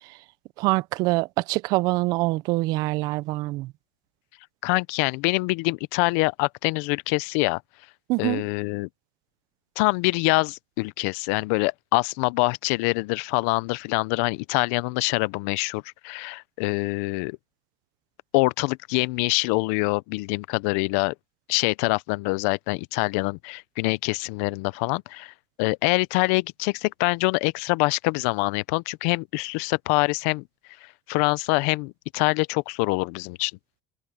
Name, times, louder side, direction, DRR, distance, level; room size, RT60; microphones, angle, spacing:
voice 1, 0.6-3.7 8.1-8.4, right 21 dB, 60° right, 0.5 m, -24 dB
voice 2, 4.6-7.6 8.2-8.9 9.8-17.4 18.3-21.1 21.5-25.3 25.6-30.4 31.1-33.5, left 26 dB, 80° left, 0.5 m, -25 dB
cardioid pair, 145°, 8 cm